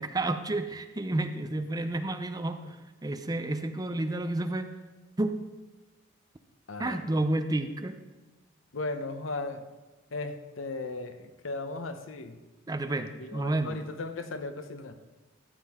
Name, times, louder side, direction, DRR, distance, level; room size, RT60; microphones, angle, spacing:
voice 1, 0.0-2.6 3.0-4.7 5.2-5.4 6.8-8.0 12.7-13.8, right 2 dB, 20° right, 8 dB, 0.5 m, -30 dB
voice 2, 6.7-7.0 8.7-9.6 10.1-12.4 13.2-15.0, left 3 dB, 90° left, 9 dB, 0.8 m, -36 dB
13.5 x 7.4 x 3.6 m, 1.2 s
head